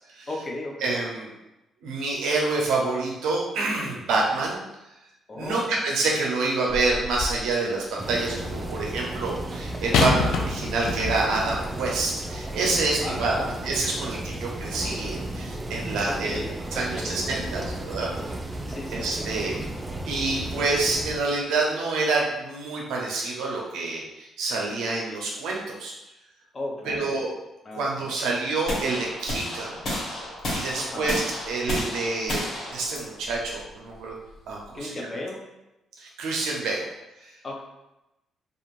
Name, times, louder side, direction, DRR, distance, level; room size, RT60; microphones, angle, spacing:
voice 1, 0.3-0.9 5.3-5.8 9.9-10.2 13.0-13.5 16.1-17.4 18.7-19.3 26.5-27.1 27.6-28.1 30.8-31.2 34.7-35.4 37.4-37.6, left 2 dB, 35° left, 0 dB, 0.6 m, -35 dB
voice 2, 0.8-1.3 1.8-4.6 5.3-13.3 13.6-16.4 16.7-18.3 18.9-19.6 20.1-25.9 26.8-27.3 27.7-29.8 30.5-34.1 34.5-35.1 36.0-36.9 37.2-37.3, right 3 dB, 90° right, -2 dB, 0.6 m, -27 dB
sound 1, 6.7-7.5 9.9-11.5 12.3-12.4, left 4 dB, 85° left, 0.3 m, -26 dB
sound 2, 8.0-21.2, right 1 dB, 20° right, 0.3 m, -34 dB
sound 3, 28.7-34.7, left 1 dB, 60° left, 1.2 m, -32 dB
3.0 x 2.4 x 2.5 m, 0.95 s
cardioid pair, 90°, 0 cm